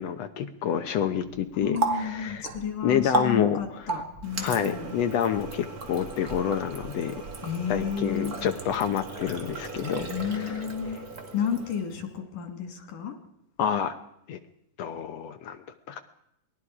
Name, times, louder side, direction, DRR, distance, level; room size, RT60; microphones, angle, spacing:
voice 1, 0.0-2.4 2.8-3.6 4.4-7.2 7.7-10.1 10.4-10.5 13.6-14.0 14.3-14.4 14.8-15.6 15.9-16.0, left 8 dB, 65° left, 9 dB, 1.9 m, -28 dB
Water tap faucet, 1.2-12.0, right 3 dB, 35° right, 2.1 m, -35 dB
voice 2, 1.6-4.9 7.4-8.4 10.0-11.0 11.3-13.2, left 8 dB, 90° left, 5 dB, 4.1 m, -32 dB
27.5 x 20.5 x 4.9 m, 0.79 s
omnidirectional pair, 3.6 m